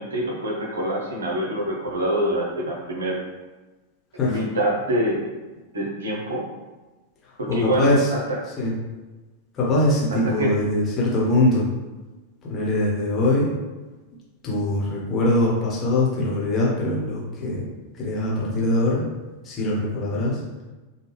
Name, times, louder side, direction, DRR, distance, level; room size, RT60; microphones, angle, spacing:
voice 1, 0.0-3.2 4.2-5.3 5.7-6.4 7.4-8.2 10.2-10.5, right 1 dB, 70° right, -2 dB, 0.7 m, -25 dB
voice 2, 7.2-8.1 8.6-8.7 9.5-11.7 12.5-13.5 14.4-17.6 18.0-19.0 19.4-20.4, left 1 dB, 25° left, -6 dB, 1.1 m, -22 dB
3.4 x 2.3 x 3.3 m, 1.2 s
figure-of-eight pair, 90°, 0 cm